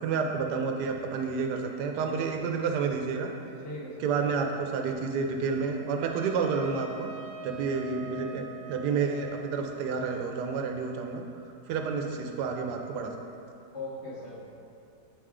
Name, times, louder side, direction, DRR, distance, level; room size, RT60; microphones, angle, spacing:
voice 1, 0.0-3.3 4.0-7.1 7.4-11.2 11.7-13.1, right 5 dB, 90° right, 3 dB, 1.2 m, -30 dB
voice 2, 2.0-2.5 3.6-4.4 13.7-14.5, left 2 dB, 45° left, -7 dB, 1.2 m, -40 dB
Trumpet, 6.0-10.8, right 4 dB, 60° right, 1.2 m, -45 dB
8.0 x 3.2 x 3.6 m, 2.6 s
omnidirectional pair, 1.7 m